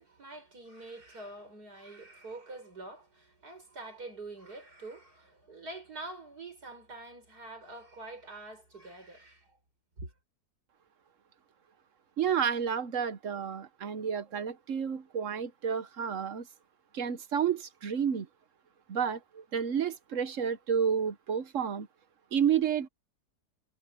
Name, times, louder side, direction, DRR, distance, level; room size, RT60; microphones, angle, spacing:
voice 1, 0.0-9.6 10.0-10.1, right 2 dB, 70° right, 7.3 m, -46 dB
voice 2, 12.2-16.5 16.9-18.3 18.9-21.9 22.3-22.9, right 7 dB, 55° right, 1.2 m, -30 dB
omnidirectional pair, 1.7 m